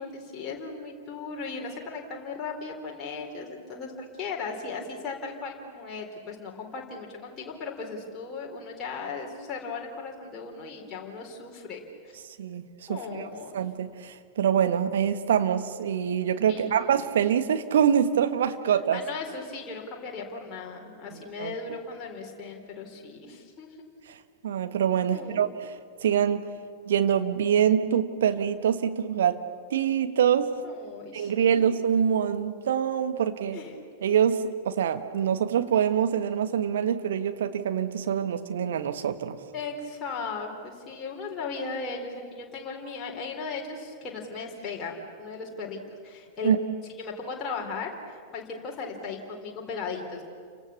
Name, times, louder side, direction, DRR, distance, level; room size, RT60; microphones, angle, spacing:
voice 1, 0.0-12.1 12.9-13.6 16.5-17.0 18.9-23.7 25.1-25.5 30.6-31.8 33.5-33.7 39.5-46.6 47.0-50.2, left 4 dB, 25° left, -1 dB, 4.0 m, -37 dB
voice 2, 12.9-13.3 13.5-19.0 21.4-21.8 24.1-24.2 24.4-25.7 26.0-26.5 26.9-29.4 29.7-30.5 31.1-33.6 34.0-39.4 46.4-46.6, right 8 dB, 60° right, 8 dB, 1.5 m, -25 dB
30.0 x 25.0 x 7.1 m, 2.2 s
figure-of-eight pair, 90°, 0 cm